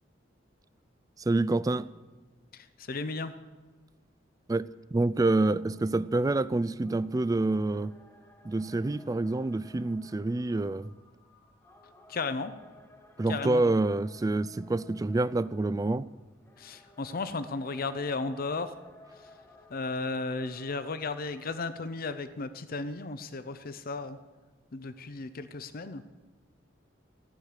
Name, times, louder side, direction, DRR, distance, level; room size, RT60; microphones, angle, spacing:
voice 1, 1.2-1.9 4.5-7.9 8.4-10.9 13.2-16.1, right 2 dB, 20° right, 0.3 m, -27 dB
voice 2, 2.5-3.3 12.1-12.5 13.3-13.6 16.6-18.8 19.2-19.3 19.7-24.2 24.7-26.0, left 3 dB, 50° left, 0.7 m, -34 dB
sound 1, 5.2-21.8, left 1 dB, 15° left, 1.4 m, -58 dB
15.0 x 6.5 x 9.9 m
head